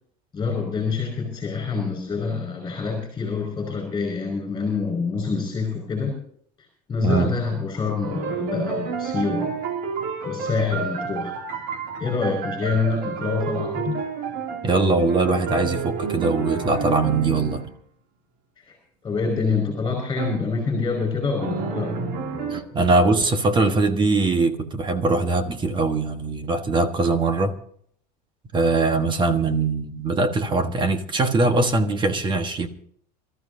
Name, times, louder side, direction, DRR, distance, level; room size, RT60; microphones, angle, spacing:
voice 1, 0.3-6.2 6.9-9.5 10.2-11.4 12.0-14.0 18.7-18.8 19.0-21.9, left 4 dB, 20° left, 5.0 m, -26 dB
voice 2, 7.0-7.4 14.6-17.6 22.5-27.6 28.5-32.7, right 3 dB, 20° right, 1.3 m, -21 dB
sound 1, 8.0-17.7 20.2-20.5 21.4-22.6, right 5 dB, 60° right, 2.7 m, -30 dB
26.5 x 14.0 x 2.7 m
supercardioid pair, 135°, 21 cm